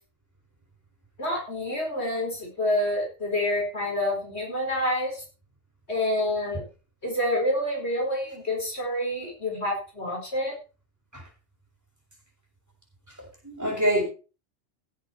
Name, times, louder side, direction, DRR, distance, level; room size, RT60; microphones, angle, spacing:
voice 1, 1.2-5.2 5.9-6.6 7.0-10.6, left 1 dB, 60° left, 0 dB, 4.9 m, -28 dB
voice 2, 13.2-14.0, equal, 15° right, -1 dB, 6.1 m, -26 dB
17.0 x 8.2 x 4.4 m, 0.33 s
omnidirectional pair, 1.2 m